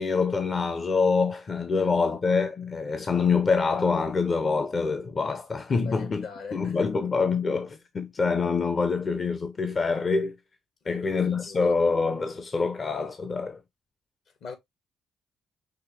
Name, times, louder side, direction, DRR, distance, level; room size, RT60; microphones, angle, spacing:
voice 1, 0.0-6.2 6.5-10.3 10.9-13.6, left 4 dB, 40° left, 0.6 m, -25 dB
voice 2, 1.7-2.1 5.8-6.9 10.8-11.6 14.4-14.5, left 5 dB, 70° left, 1.7 m, -42 dB
5.9 x 2.7 x 3.1 m
cardioid pair, 90°, 0 cm